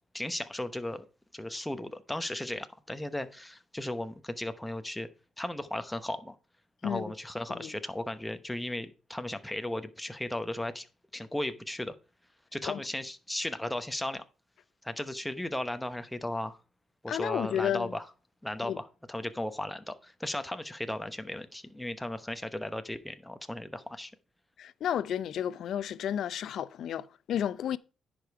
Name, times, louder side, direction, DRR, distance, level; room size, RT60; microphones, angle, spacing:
voice 1, 0.1-1.1 1.3-5.1 5.4-6.3 6.8-10.9 11.1-11.9 12.5-14.2 14.8-16.6 17.0-18.0 18.4-24.1, left 1 dB, 5° left, 0.9 m, -36 dB
voice 2, 6.8-7.1 7.6-7.7 12.7-12.8 17.1-17.9 18.6-18.8 24.6-27.8, left 10 dB, 70° left, 0.5 m, -32 dB
10.0 x 5.2 x 4.6 m
cardioid pair, 90°, 0 cm